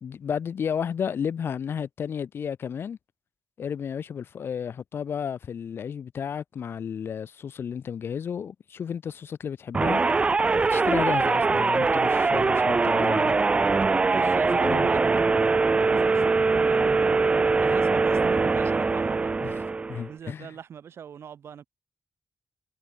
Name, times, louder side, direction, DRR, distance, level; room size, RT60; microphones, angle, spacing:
voice 1, 0.0-3.0 3.6-10.0 10.5-13.4 14.5-14.9 19.4-19.6 19.9-20.5, left 7 dB, 65° left, 0.6 m, -32 dB
sound 1, 9.7-20.1, right 4 dB, 30° right, 0.4 m, -22 dB
voice 2, 14.0-17.2 17.5-19.3 20.1-21.7, right 8 dB, 85° right, 1.6 m, -42 dB
wide cardioid pair, 140°, 4 cm